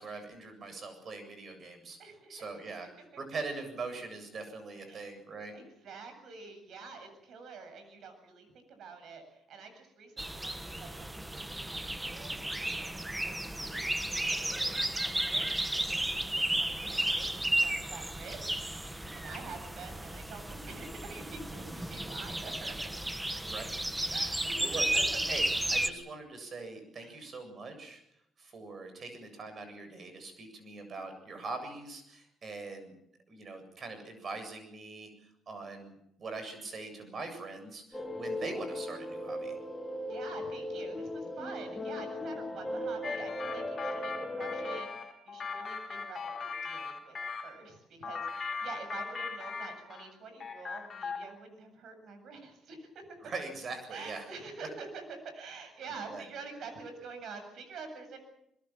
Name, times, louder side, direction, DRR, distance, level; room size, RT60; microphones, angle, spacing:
voice 1, 0.0-2.0 2.3-2.9 3.2-5.5 23.4-23.8 24.4-24.8 25.3-25.4 25.7-28.0 28.4-32.9 33.3-39.6 53.2-54.2 56.1-56.2, right 3 dB, 50° right, 8 dB, 7.8 m, -42 dB
voice 2, 2.0-2.5 4.9-5.1 5.5-13.9 14.2-22.9 24.1-25.2 27.0-27.2 40.1-53.2 53.9-58.2, right 4 dB, 70° right, 7 dB, 7.9 m, -47 dB
sound 1, 10.2-25.9, right 1 dB, 10° right, 1.5 m, -33 dB
sound 2, 37.9-44.8, left 1 dB, 15° left, 4.2 m, -37 dB
sound 3, 43.0-47.5 48.0-50.1 50.4-51.4, left 5 dB, 45° left, 5.1 m, -39 dB
22.5 x 22.0 x 7.6 m, 0.78 s
cardioid pair, 90°, 0 cm